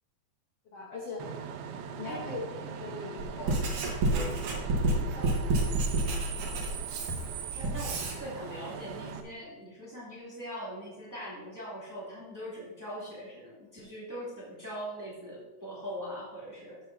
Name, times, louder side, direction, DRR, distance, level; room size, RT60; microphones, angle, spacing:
voice 1, 0.6-1.3 2.0-3.6 4.2-4.3 5.0-5.4, left 3 dB, 75° left, -3 dB, 1.4 m, -41 dB
Bus / Idling / Screech, 1.2-9.2, right 7 dB, 80° right, 2.8 m, -40 dB
voice 2, 2.9-3.3 7.5-16.8, equal, 5° right, -7 dB, 2.1 m, -41 dB
Writing, 3.2-8.2, right 2 dB, 60° right, 2.3 m, -29 dB
13.5 x 7.9 x 2.8 m, 1.2 s
omnidirectional pair, 4.8 m